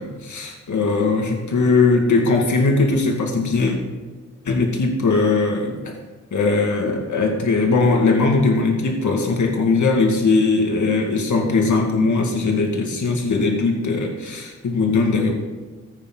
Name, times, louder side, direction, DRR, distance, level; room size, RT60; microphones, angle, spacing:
voice 1, 0.0-3.8 4.4-5.7 6.3-15.3, left 3 dB, 80° left, 1 dB, 2.1 m, -19 dB
14.5 x 8.9 x 4.0 m, 1.3 s
cardioid pair, 70°, 29 cm